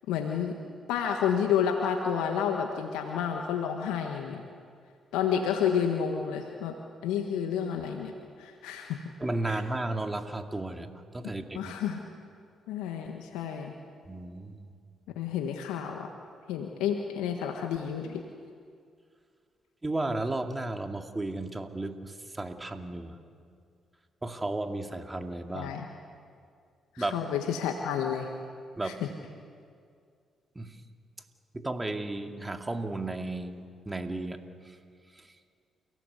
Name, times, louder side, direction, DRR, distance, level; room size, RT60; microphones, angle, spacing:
voice 1, 0.1-0.6 0.9-4.4 5.1-6.7 7.0-8.1 8.4-9.0 9.4-9.6 11.5-12.0 12.7-13.7 15.1-16.1 16.5-18.2 25.5-25.9 26.9-28.3 28.8-29.1, left 8 dB, 85° left, 3 dB, 1.5 m, -30 dB
voice 2, 9.2-11.6 14.1-14.7 19.8-23.2 24.2-25.7 27.0-27.2 28.8-29.0 30.6-30.7 31.5-34.4, right 2 dB, 20° right, 5 dB, 2.4 m, -34 dB
29.0 x 17.0 x 8.3 m, 2.2 s
supercardioid pair, 55°, 0 cm